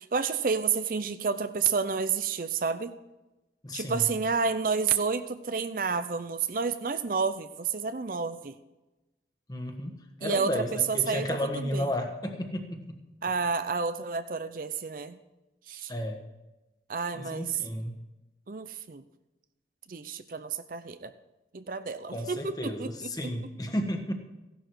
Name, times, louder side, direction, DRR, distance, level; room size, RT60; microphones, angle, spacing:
voice 1, 0.0-2.9 3.7-8.5 10.2-11.3 11.5-11.9 13.2-15.2 15.7-15.9 16.9-17.6 18.5-19.0 19.9-21.1 21.5-23.3, right 5 dB, 50° right, 11 dB, 0.5 m, -30 dB
voice 2, 3.6-4.1 9.5-13.0 15.9-16.2 17.1-18.0 22.1-24.1, left 1 dB, 20° left, 4 dB, 1.4 m, -33 dB
15.5 x 11.5 x 4.7 m, 1.0 s
head